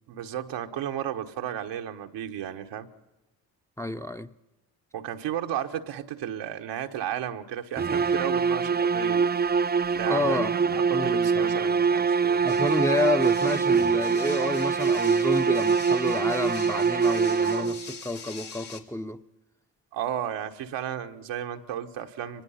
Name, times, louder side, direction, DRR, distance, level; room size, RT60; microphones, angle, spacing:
voice 1, 0.1-2.9 4.9-9.3 9.9-10.6 10.9-12.4 19.9-22.4, right 10 dB, 80° right, 1.3 m, -33 dB
voice 2, 3.8-4.3 10.1-10.5 10.9-11.5 12.4-19.2, left 1 dB, 5° left, 0.9 m, -29 dB
sound 1, 7.8-18.0, right 5 dB, 25° right, 0.6 m, -24 dB
sound 2, 12.5-18.8, left 7 dB, 65° left, 2.6 m, -44 dB
23.5 x 20.0 x 5.7 m
supercardioid pair, 50°, 42 cm